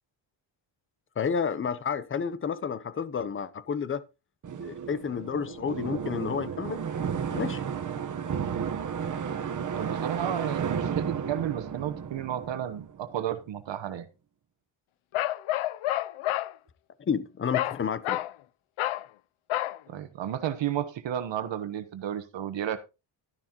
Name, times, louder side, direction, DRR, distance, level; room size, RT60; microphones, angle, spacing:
voice 1, 1.2-4.0 4.6-6.8 7.3-7.6 17.0-18.2, left 6 dB, 25° left, 0.7 m, -30 dB
sound 1, 4.4-13.2, right 7 dB, 40° right, 1.1 m, -33 dB
voice 2, 9.7-14.1 19.9-22.8, right 10 dB, 65° right, 1.2 m, -32 dB
Bark, 15.1-16.5 17.5-17.8 18.0-18.3 18.8-19.1 19.5-19.8, left 14 dB, 90° left, 0.6 m, -29 dB
12.5 x 11.0 x 3.0 m
cardioid pair, 150°, 48 cm